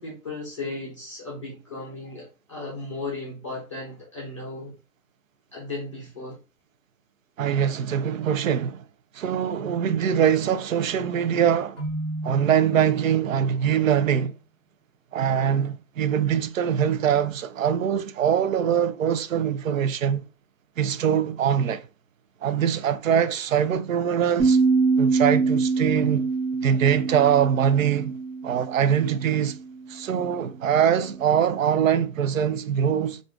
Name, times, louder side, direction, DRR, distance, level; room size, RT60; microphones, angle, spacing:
voice 1, 0.0-4.8 5.5-6.4, left 2 dB, 25° left, 0.5 m, -35 dB
voice 2, 7.4-8.8 9.1-11.8 12.2-14.3 15.1-20.2 20.8-21.9 22.4-24.6 25.0-26.2 26.6-28.1 28.4-29.6 29.9-33.2, right 8 dB, 70° right, 0.5 m, -23 dB
Keyboard (musical), 11.8-13.6, right 1 dB, 10° right, 0.9 m, -34 dB
sound 1, 24.4-29.5, right 4 dB, 40° right, 0.9 m, -24 dB
2.4 x 2.4 x 3.5 m
hypercardioid pair, 160°, 42 cm